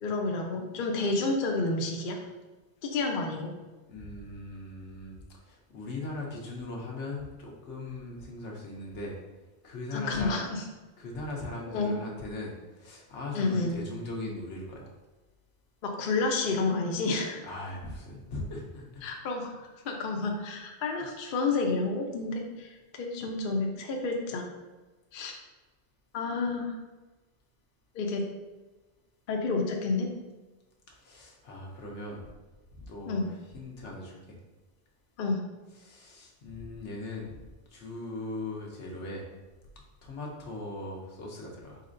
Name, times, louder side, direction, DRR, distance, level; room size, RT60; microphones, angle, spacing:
voice 1, 0.0-2.2 2.8-3.5 9.9-10.6 11.7-12.0 13.3-13.8 15.8-17.4 19.0-24.5 25.1-25.4 26.1-26.7 27.9-28.2 29.3-30.1 33.1-33.3 35.2-35.4, left 3 dB, 55° left, 1 dB, 0.7 m, -30 dB
voice 2, 3.9-5.2 5.4-9.2 9.6-10.4 11.0-14.9 17.4-19.0 31.0-32.2 32.8-34.4 35.8-37.3 37.7-39.3 40.0-41.8, left 2 dB, 85° left, -1 dB, 1.2 m, -39 dB
4.1 x 4.1 x 2.5 m, 1.2 s
omnidirectional pair, 1.2 m